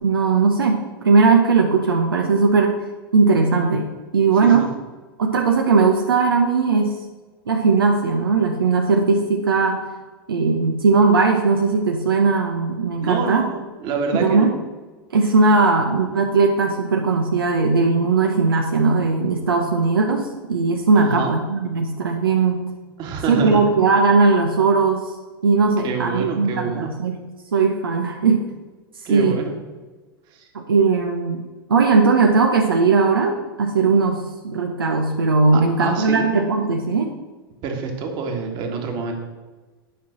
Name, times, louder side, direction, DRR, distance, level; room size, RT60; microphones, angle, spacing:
voice 1, 0.0-2.8 3.1-4.7 5.2-7.0 7.5-9.8 10.3-13.4 14.2-14.5 15.1-22.6 23.3-25.1 25.4-27.2 27.5-28.4 29.1-29.4 30.5-37.1, right 4 dB, 75° right, 2 dB, 1.0 m, -18 dB
voice 2, 13.0-14.5 20.9-21.3 23.0-23.7 25.8-26.9 29.0-29.5 30.3-30.5 35.5-36.2 37.6-39.1, right 5 dB, 40° right, 3 dB, 1.9 m, -27 dB
10.0 x 5.6 x 6.1 m, 1.3 s
figure-of-eight pair, 95°, 12 cm